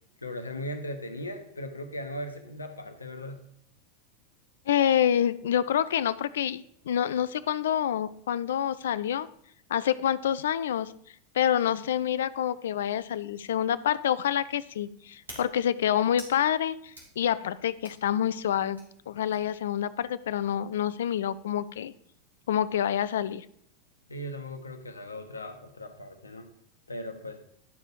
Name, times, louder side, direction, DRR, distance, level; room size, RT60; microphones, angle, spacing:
voice 1, 0.2-3.4 24.1-26.5 26.9-27.4, left 1 dB, 80° left, 7 dB, 0.9 m, -38 dB
voice 2, 4.7-9.3 9.7-10.9 11.3-18.8 19.1-21.9 22.5-23.5, left 10 dB, 65° left, 17 dB, 0.4 m, -27 dB
sound 1, 13.3-19.6, right 1 dB, 80° right, 2.7 m, -52 dB
11.0 x 4.8 x 4.6 m, 0.68 s
figure-of-eight pair, 85°, 0 cm